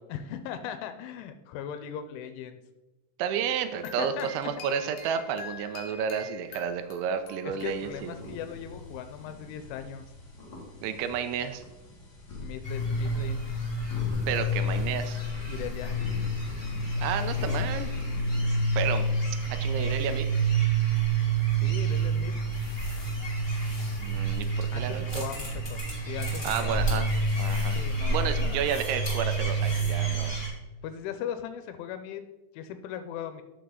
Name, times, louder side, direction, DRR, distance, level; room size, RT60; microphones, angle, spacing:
voice 1, 0.1-2.6 4.0-4.3 5.9-6.0 7.4-10.1 12.4-13.5 15.4-16.0 21.5-22.4 24.7-25.8 26.1-26.9 27.8-28.8 30.8-32.2 32.5-33.4, left 9 dB, 85° left, 9 dB, 3.1 m, -38 dB
voice 2, 3.2-8.1 10.8-11.6 14.3-15.2 17.0-18.0 18.8-19.1 19.5-20.3 24.0-25.2 26.4-27.8 28.1-30.4, right 8 dB, 85° right, 9 dB, 3.1 m, -31 dB
sound 1, 3.4-8.3, left 3 dB, 70° left, 3.9 m, -46 dB
sound 2, 7.6-18.9, left 1 dB, 40° left, 1.8 m, -42 dB
sound 3, 12.6-30.5, right 2 dB, 5° left, 2.3 m, -28 dB
13.0 x 6.9 x 3.9 m, 1.1 s
omnidirectional pair, 5.5 m